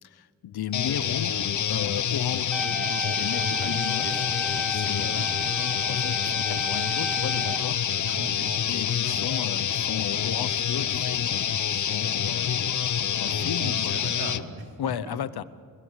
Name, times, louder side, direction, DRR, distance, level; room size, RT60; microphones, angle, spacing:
voice 1, 0.0-1.3 1.7-2.7 3.0-4.2 4.7-5.3 5.7-8.1 8.7-14.0 14.8-15.4, left 10 dB, 75° left, 15 dB, 1.0 m, -35 dB
sound 1, 0.7-14.4, left 9 dB, 50° left, 0.8 m, -27 dB
sound 2, 2.5-7.6, right 1 dB, ahead, 1.4 m, -33 dB
voice 2, 5.0-5.3 8.1-8.6 13.2-14.7 15.1-15.2, right 2 dB, 75° right, 3 dB, 3.8 m, -38 dB
25.0 x 21.0 x 8.2 m, 2.2 s
wide cardioid pair, 130°, 39 cm